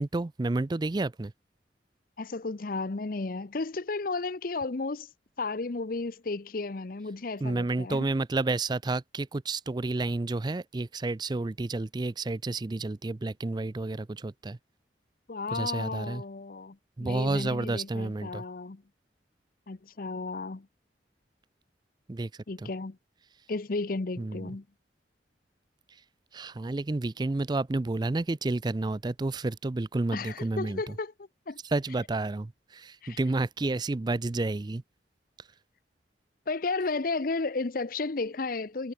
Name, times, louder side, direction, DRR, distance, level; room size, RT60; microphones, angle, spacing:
voice 1, 0.0-1.3 7.4-14.6 15.5-16.2 17.0-18.4 22.1-22.3 22.6-22.7 24.2-24.5 26.3-31.0 31.6-34.8, right 2 dB, 25° right, 0.4 m, -30 dB
voice 2, 2.2-5.1 5.4-8.1 15.3-18.8 19.7-20.7 22.5-23.0 23.5-24.6 30.1-31.6 33.0-33.2 36.5-38.9, left 3 dB, 50° left, 0.7 m, -33 dB
head